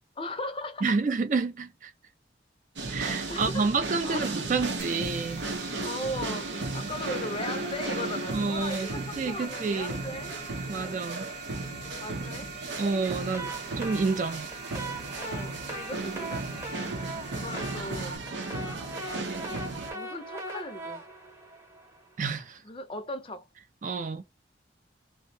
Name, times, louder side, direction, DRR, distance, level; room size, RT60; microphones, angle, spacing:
voice 1, 0.2-1.0 3.1-3.7 4.0-4.3 5.8-10.4 10.7-11.1 12.0-12.6 15.1-16.5 17.3-18.2 19.9-21.1 22.6-23.5, left 1 dB, 30° left, 0.5 m, -38 dB
voice 2, 0.8-1.9 2.9-5.4 8.3-8.9 9.2-10.0 10.7-11.3 12.8-13.5 13.8-14.5 22.2-22.6 23.8-24.2, right 4 dB, 45° right, 0.3 m, -29 dB
sound 1, 2.8-19.9, right 2 dB, 90° right, 0.7 m, -35 dB
sound 2, 4.8-18.2, right 4 dB, 60° right, 0.9 m, -43 dB
sound 3, 13.1-22.2, right 2 dB, 15° right, 0.8 m, -40 dB
2.6 x 2.1 x 2.6 m
head